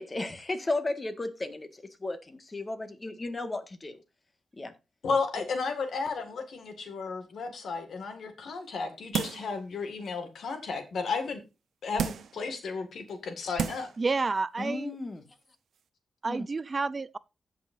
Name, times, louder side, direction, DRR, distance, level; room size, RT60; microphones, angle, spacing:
voice 1, 0.0-4.0 4.6-4.7 14.6-15.2 16.2-16.4, left 2 dB, 30° left, 1.6 m, -34 dB
voice 2, 5.0-11.4 11.8-13.9, left 4 dB, 80° left, 2.0 m, -33 dB
sound 1, 9.1-9.6 10.1-10.2 12.0-12.4 13.1-13.2 13.6-14.0 14.4-14.5, right 7 dB, 85° right, 0.8 m, -32 dB
voice 3, 14.0-15.0 16.2-17.2, right 4 dB, 40° right, 0.4 m, -30 dB
16.0 x 5.6 x 2.6 m
cardioid pair, 75°, 0 cm